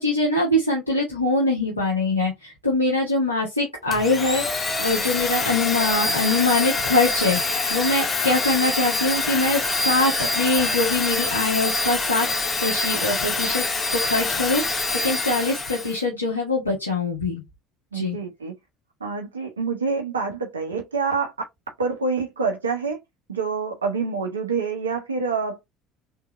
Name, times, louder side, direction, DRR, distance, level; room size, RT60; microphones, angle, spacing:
voice 1, 0.0-4.4 4.8-7.4 7.7-12.3 12.6-13.7 13.9-17.4 17.9-18.2, left 2 dB, 85° left, 1.2 m, -23 dB
Domestic sounds home sounds, 3.9-16.0, left 3 dB, 25° left, 1.1 m, -25 dB
voice 2, 17.9-18.5 19.0-21.3 21.8-23.0 23.3-25.6, right 4 dB, 80° right, 0.9 m, -26 dB
3.7 x 3.5 x 3.0 m
figure-of-eight pair, 60°, 0 cm